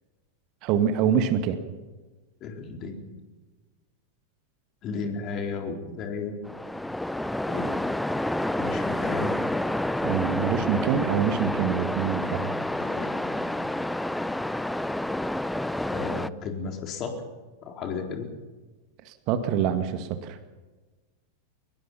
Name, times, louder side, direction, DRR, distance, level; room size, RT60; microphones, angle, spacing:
voice 1, 0.6-1.6 10.0-12.5 19.1-20.4, right 8 dB, 40° right, 8 dB, 2.0 m, -25 dB
voice 2, 2.4-3.1 4.8-6.3 7.5-7.7 8.6-9.3 12.7-13.8 15.9-17.1 17.6-18.3, left 4 dB, 35° left, 3 dB, 4.4 m, -34 dB
Waves surf, 6.4-16.3, left 1 dB, 5° left, 0.6 m, -29 dB
24.5 x 21.5 x 5.8 m, 1.3 s
figure-of-eight pair, 90°, 0 cm